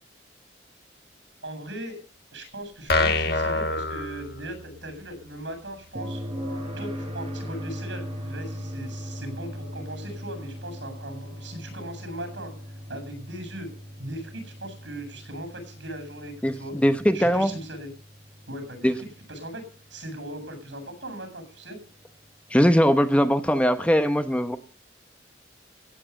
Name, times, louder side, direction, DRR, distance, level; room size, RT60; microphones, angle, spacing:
voice 1, 1.4-2.0 2.3-6.2 6.8-12.5 12.9-13.7 14.0-16.8 17.1-17.9 18.5-21.8, right 1 dB, 80° right, 7.4 m, -38 dB
sound 1, 2.9-4.8, left 3 dB, 55° left, 1.8 m, -25 dB
sound 2, 6.0-19.8 22.0-22.1, equal, 30° right, 4.7 m, -38 dB
voice 2, 16.4-17.5 18.8-19.0 22.5-24.6, equal, 5° left, 0.8 m, -21 dB
15.5 x 8.6 x 8.2 m
head